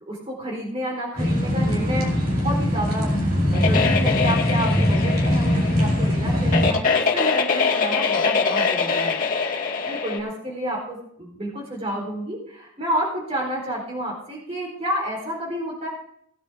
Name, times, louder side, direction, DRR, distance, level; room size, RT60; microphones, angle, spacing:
voice 1, 0.1-9.2 9.8-15.9, right 1 dB, 30° right, -2 dB, 4.1 m, -30 dB
sound 1, 1.2-6.7, left 1 dB, 45° right, 4.6 m, -21 dB
sound 2, 3.5-10.2, left 5 dB, 40° left, 2.2 m, -24 dB
18.5 x 10.0 x 3.7 m, 0.67 s
head